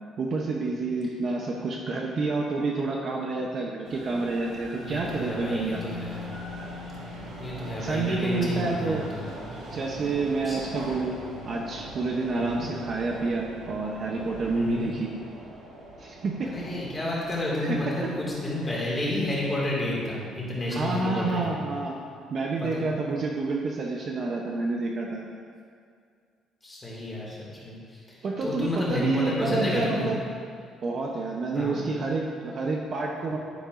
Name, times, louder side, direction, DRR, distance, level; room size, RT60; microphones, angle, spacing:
voice 1, 0.2-5.8 7.8-9.0 9.7-11.2 11.4-15.1 16.0-16.5 17.6-17.8 20.7-22.0 22.3-25.2 28.2-30.2 30.8-33.4, right 3 dB, 35° right, -1 dB, 0.7 m, -28 dB
sound 1, 3.8-18.7, right 1 dB, 75° right, 2.3 m, -42 dB
voice 2, 4.8-6.2 7.4-9.2 10.4-10.6 12.3-12.6 14.6-14.9 16.5-21.5 22.6-22.9 26.6-27.4 27.6-27.8 28.4-30.1 31.5-31.8, left 1 dB, 15° left, -6 dB, 2.2 m, -30 dB
Keyboard (musical), 5.7-9.0, left 7 dB, 60° left, 0.7 m, -43 dB
10.5 x 10.0 x 2.6 m, 2.1 s
cardioid pair, 175°, 0 cm